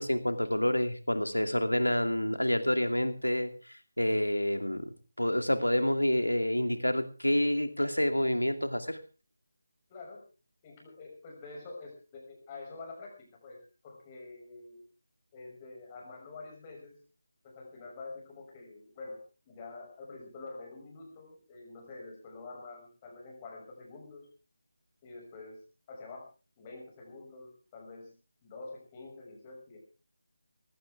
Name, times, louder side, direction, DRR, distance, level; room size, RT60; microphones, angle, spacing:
voice 1, 0.0-4.9 5.2-9.0, left 1 dB, 80° left, 8 dB, 2.5 m, -28 dB
voice 2, 9.9-10.2 10.6-14.8 15.3-17.0 17.4-19.2 19.5-24.3 25.0-25.6 25.9-26.3 26.6-28.2 28.4-29.8, left 3 dB, 20° left, 1 dB, 5.9 m, -47 dB
19.5 x 16.0 x 3.5 m, 0.36 s
figure-of-eight pair, 160°, 0 cm